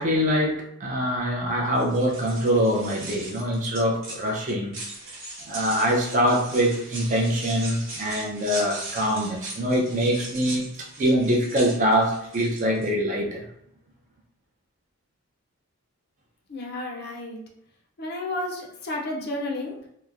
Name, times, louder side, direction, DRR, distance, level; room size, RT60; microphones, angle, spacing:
voice 1, 0.0-4.8 5.5-13.5, equal, 35° right, -1 dB, 0.4 m, -24 dB
sound 1, 1.7-12.9, right 2 dB, 60° right, 1.0 m, -39 dB
voice 2, 16.5-17.4 18.0-19.8, left 2 dB, 45° left, -1 dB, 0.4 m, -31 dB
2.9 x 2.1 x 2.4 m, 0.73 s
head